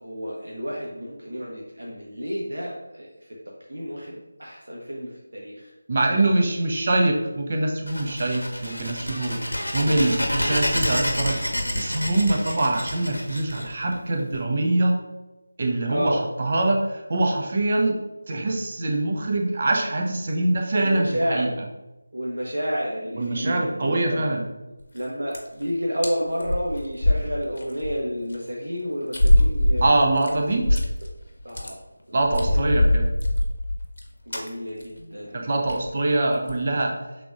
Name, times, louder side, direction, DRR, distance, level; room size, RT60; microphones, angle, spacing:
voice 1, 0.0-3.1 3.7-5.7 15.9-16.2 20.7-21.5 22.1-24.2 24.9-29.9 30.5-30.6 31.4-31.8 32.1-32.6 34.3-35.5, equal, 60° right, -3 dB, 0.9 m, -30 dB
voice 2, 5.9-9.4 9.7-15.0 15.6-21.5 23.1-24.5 29.8-30.8 32.1-33.1 35.3-36.9, right 2 dB, 35° right, 2 dB, 0.7 m, -24 dB
sound 1, 7.9-14.4, equal, 85° left, 1.0 m, -28 dB
sound 2, 24.8-25.0 25.3-25.6 26.0-26.1 26.4-27.9 28.3-28.4 29.1-31.1 31.4-31.7 32.2-34.0 34.3-34.5 34.8-35.0 35.3-35.4 35.7-35.9 36.3-36.6, left 1 dB, 55° left, 0.9 m, -22 dB
5.8 x 3.6 x 2.5 m, 1.0 s
figure-of-eight pair, 165°, 0 cm